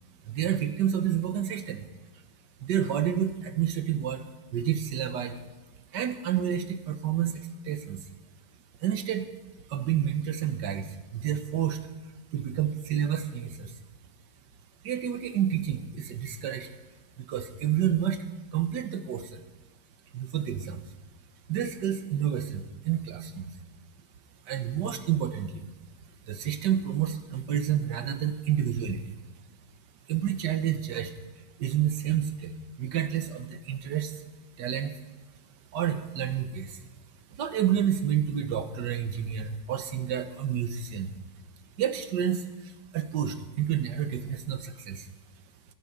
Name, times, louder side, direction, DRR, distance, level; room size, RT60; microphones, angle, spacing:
voice 1, 0.3-1.9 2.6-4.2 4.5-5.4 5.9-8.0 8.8-9.3 9.7-11.8 12.3-13.7 14.8-16.7 17.2-18.2 18.5-19.4 20.1-20.9 21.5-23.5 24.4-25.6 26.3-29.1 30.1-31.1 31.6-34.2 34.6-34.9 35.7-36.8 37.3-41.1 41.8-45.1, right 10 dB, 80° right, 9 dB, 1.6 m, -29 dB
16.5 x 11.0 x 5.3 m, 1.2 s
omnidirectional pair, 1.8 m